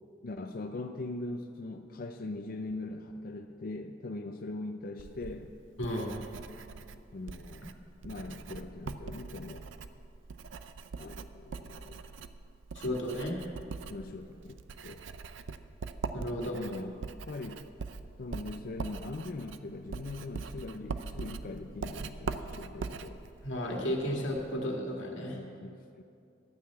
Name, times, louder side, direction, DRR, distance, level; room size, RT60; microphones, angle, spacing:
voice 1, 0.2-5.5 7.1-7.7 8.0-9.7 11.0-12.1 13.9-14.6 14.8-15.1 16.5-17.0 17.3-17.6 18.2-23.2 25.3-26.0, left 2 dB, 50° left, 5 dB, 0.5 m, -41 dB
Writing, 5.0-24.5, right 4 dB, 90° right, 0.5 m, -42 dB
voice 2, 5.8-6.1 12.7-13.4 16.1-16.6 23.4-25.4, equal, 90° left, 0 dB, 1.9 m, -33 dB
12.5 x 6.1 x 8.3 m, 2.5 s
head